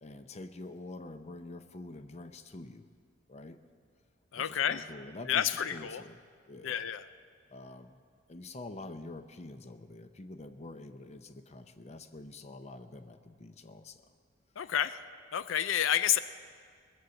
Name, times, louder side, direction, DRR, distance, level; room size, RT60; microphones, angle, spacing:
voice 1, 0.0-2.9 3.3-3.6 4.4-6.2 6.5-6.8 7.5-8.0 8.3-14.1, left 2 dB, 35° left, 9 dB, 0.6 m, -46 dB
voice 2, 4.3-4.8 5.3-6.0 6.6-7.0 14.6-15.0 15.3-16.2, left 9 dB, 90° left, 13 dB, 0.4 m, -29 dB
20.5 x 7.8 x 7.1 m, 2.1 s
head